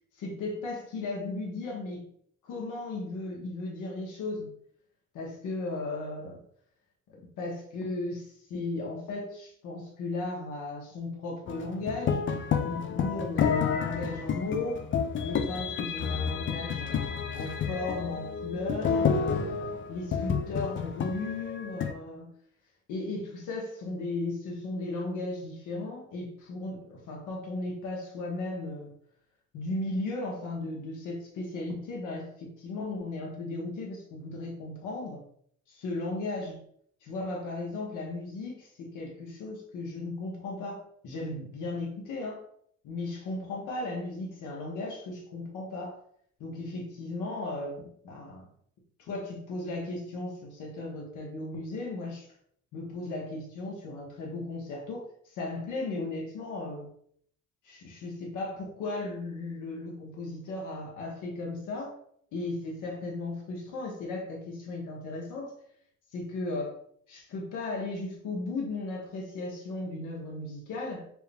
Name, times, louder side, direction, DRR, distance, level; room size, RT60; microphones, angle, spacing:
voice 1, 0.2-2.1 2.4-4.5 5.1-6.4 7.4-14.8 15.2-17.0 17.3-19.5 19.9-22.3 22.9-28.9 29.5-35.2 35.7-36.6 37.0-42.4 42.8-46.0 46.4-48.5 49.1-52.3 52.7-56.9 57.6-61.9 62.3-65.5 66.1-66.8 67.1-71.1, left 2 dB, 85° left, -1 dB, 1.0 m, -36 dB
sound 1, 11.5-21.9, left 6 dB, 40° left, 0.4 m, -30 dB
4.4 x 2.2 x 3.5 m, 0.65 s
cardioid pair, 90°, 30 cm